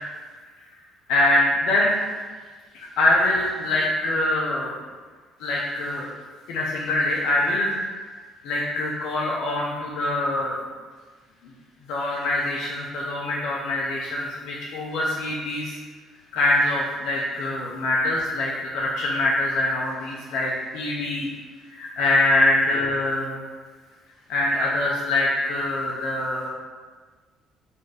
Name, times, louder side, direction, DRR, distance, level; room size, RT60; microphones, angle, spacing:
voice 1, 1.1-2.0 2.7-4.8 5.4-6.1 6.5-7.8 8.4-10.6 11.9-15.7 16.3-21.3 21.7-23.4 24.3-26.5, left 1 dB, 80° left, -4 dB, 0.6 m, -24 dB
4.2 x 2.6 x 4.8 m, 1.4 s
cardioid pair, 130°, 0 cm